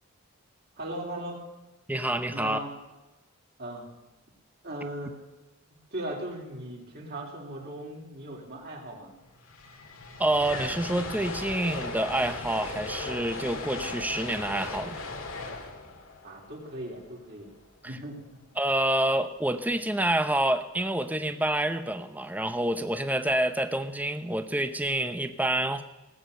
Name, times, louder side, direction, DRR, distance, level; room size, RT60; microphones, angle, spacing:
voice 1, 0.8-1.4 2.3-2.7 3.6-3.8 4.6-5.1 5.9-9.1 16.2-17.5 17.8-18.2, right 1 dB, 50° right, -1 dB, 3.6 m, -38 dB
voice 2, 1.9-2.6 10.2-14.9 18.6-25.8, right 1 dB, 10° right, 9 dB, 0.8 m, -27 dB
sound 1, 9.0-9.1 9.2-17.5, left 3 dB, 75° left, 2.0 m, -38 dB
18.5 x 8.4 x 6.7 m, 1.0 s
head